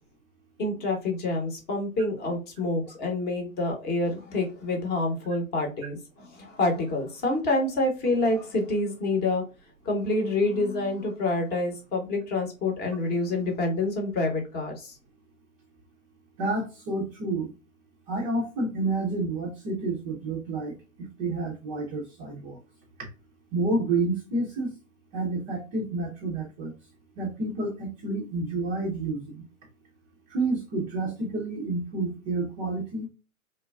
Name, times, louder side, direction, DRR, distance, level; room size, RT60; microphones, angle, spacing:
voice 1, 0.6-9.4 9.8-15.0, left 2 dB, 20° left, 2 dB, 0.9 m, -27 dB
voice 2, 16.4-17.5 18.1-20.8 21.2-22.6 23.5-24.7 25.1-26.7 27.2-29.4 30.3-33.1, right 2 dB, 15° right, -3 dB, 0.4 m, -29 dB
3.2 x 2.2 x 2.2 m, 0.31 s
figure-of-eight pair, 110°, 43 cm